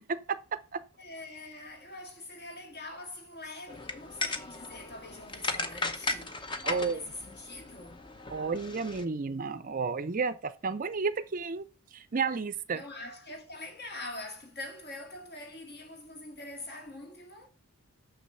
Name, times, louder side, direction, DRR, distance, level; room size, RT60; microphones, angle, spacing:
voice 1, 1.0-8.1 12.7-17.5, left 2 dB, 50° left, 2.0 m, -44 dB
sound 1, 3.7-9.0, left 3 dB, 20° left, 0.7 m, -37 dB
voice 2, 6.6-7.0 8.3-11.6 11.9-12.8, right 4 dB, 40° right, 0.5 m, -32 dB
6.6 x 6.2 x 5.6 m
head